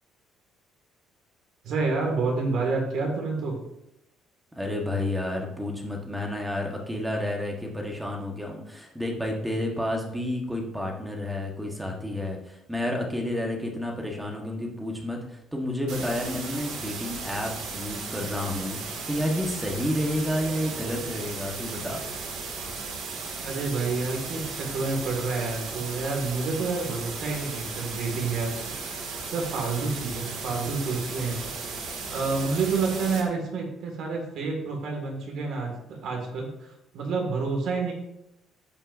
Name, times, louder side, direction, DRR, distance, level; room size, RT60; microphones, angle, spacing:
voice 1, 1.6-3.6 23.4-28.8 29.3-31.5 32.1-37.9, right 4 dB, 60° right, 1 dB, 2.0 m, -29 dB
voice 2, 4.5-22.1, left 1 dB, 5° right, 0 dB, 1.3 m, -30 dB
sound 1, 15.9-33.2, right 4 dB, 80° right, 2.1 m, -36 dB
15.0 x 5.4 x 2.6 m, 0.85 s
cardioid pair, 160°, 0 cm